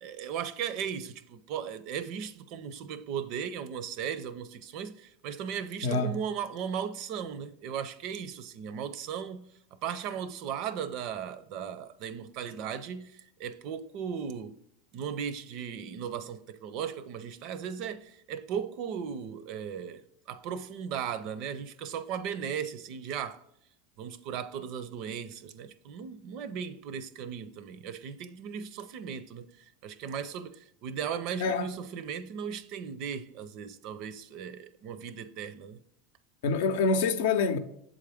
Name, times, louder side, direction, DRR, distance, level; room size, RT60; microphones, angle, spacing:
voice 1, 0.0-9.5 9.8-14.6 14.9-20.0 20.3-23.4 24.0-29.5 29.8-35.8, right 8 dB, 55° right, 0.5 m, -37 dB
voice 2, 5.8-6.2 31.4-31.7 36.4-37.6, left 4 dB, 80° left, 0.6 m, -26 dB
7.2 x 3.8 x 3.4 m
supercardioid pair, 115°, 0 cm